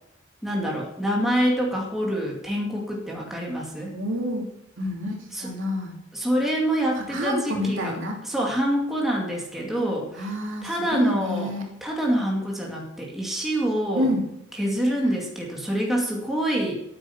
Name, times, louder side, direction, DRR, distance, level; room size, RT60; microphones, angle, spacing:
voice 1, 0.4-3.9 5.3-5.5 6.1-7.9 8.2-10.3 10.6-11.5 11.8-14.1 14.6-16.8, equal, ahead, -2 dB, 2.4 m, -26 dB
voice 2, 3.9-4.5 4.8-5.1 5.4-6.0 6.9-8.2 10.2-11.6 13.9-14.2, left 1 dB, 65° right, 0 dB, 2.9 m, -28 dB
9.3 x 9.0 x 8.6 m, 0.82 s
head